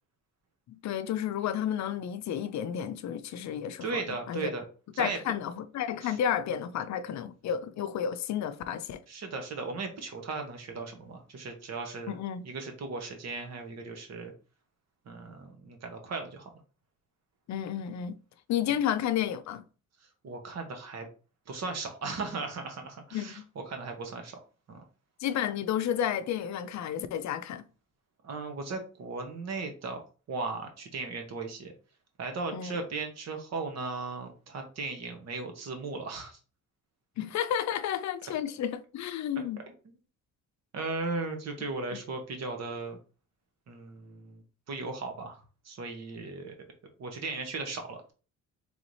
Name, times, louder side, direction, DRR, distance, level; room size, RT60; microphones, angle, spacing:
voice 1, 0.8-4.5 5.0-9.0 12.1-12.4 17.5-18.2 18.5-19.6 23.1-23.3 25.2-27.6 32.5-32.8 37.2-39.7, left 9 dB, 65° left, 0.5 m, -31 dB
voice 2, 3.8-4.6 4.9-5.2 6.0-6.2 9.1-14.3 15.1-16.5 20.2-21.1 21.5-24.4 24.7-24.8 28.2-31.7 32.2-36.4 40.7-43.0 43.7-45.4 45.6-46.5 47.0-48.1, right 3 dB, 60° right, 1.3 m, -37 dB
3.4 x 3.2 x 4.0 m
cardioid pair, 90°, 30 cm